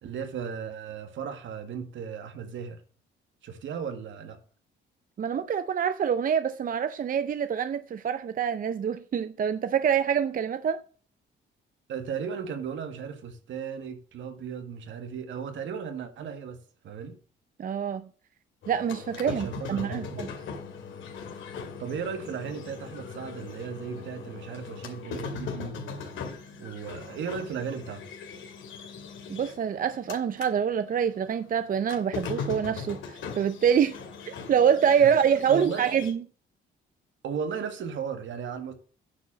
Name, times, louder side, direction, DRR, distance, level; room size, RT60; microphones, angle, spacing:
voice 1, 0.0-2.8 3.4-4.4 11.9-17.2 19.3-20.2 21.5-28.0 35.0-35.1 35.5-35.9 37.2-38.7, right 6 dB, 70° right, 1.9 m, -36 dB
voice 2, 5.2-10.8 17.6-18.0 18.7-20.3 29.3-34.0 34.5-36.2, right 8 dB, 45° right, 0.6 m, -25 dB
sound 1, 18.6-30.5 30.9-36.1, left 5 dB, 75° left, 2.4 m, -40 dB
9.7 x 4.7 x 7.5 m
cardioid pair, 90°, 20 cm